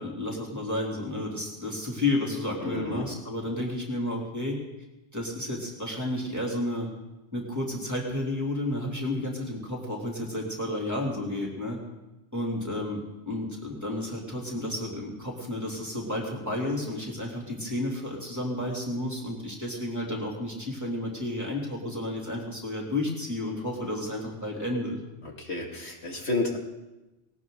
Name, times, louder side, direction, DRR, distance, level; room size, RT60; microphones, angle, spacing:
voice 1, 0.0-4.6 5.1-6.9 7.3-11.8 12.3-25.0, left 1 dB, 15° right, -2 dB, 3.2 m, -31 dB
voice 2, 2.6-3.0 25.2-26.6, left 2 dB, 75° left, 0 dB, 2.8 m, -31 dB
19.0 x 18.0 x 4.0 m, 1.0 s
omnidirectional pair, 1.1 m